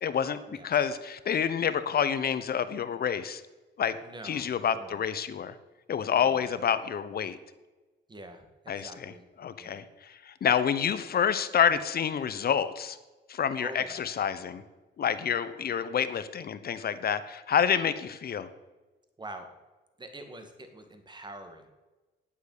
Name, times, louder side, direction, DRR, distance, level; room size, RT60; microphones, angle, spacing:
voice 1, 0.0-3.4 3.8-4.0 4.2-5.5 5.9-7.4 8.7-9.1 9.4-13.0 13.3-14.6 15.0-18.5, left 8 dB, 50° left, 13 dB, 0.9 m, -28 dB
voice 2, 4.0-5.1 6.2-6.5 8.1-9.3 9.6-9.8 13.6-14.1 19.2-19.5 20.0-21.7, right 1 dB, 20° right, 7 dB, 2.0 m, -45 dB
9.4 x 8.3 x 8.5 m, 1.2 s
cardioid pair, 90°, 20 cm